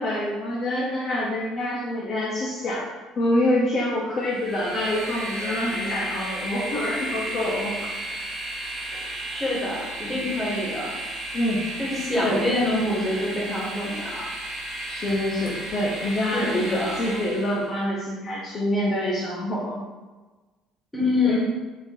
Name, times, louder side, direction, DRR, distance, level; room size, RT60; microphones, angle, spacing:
voice 1, 0.0-2.9 3.2-7.9 11.3-11.6 12.2-12.4 14.9-19.8 21.2-21.4, left 1 dB, 30° left, -5 dB, 0.5 m, -26 dB
Train, 4.2-17.7, right 1 dB, 30° right, 0.5 m, -33 dB
voice 2, 9.3-10.9 11.8-14.2 16.3-16.9 20.9-21.4, left 2 dB, 10° left, -5 dB, 0.8 m, -26 dB
3.6 x 2.5 x 2.8 m, 1.3 s
cardioid pair, 170°, 0 cm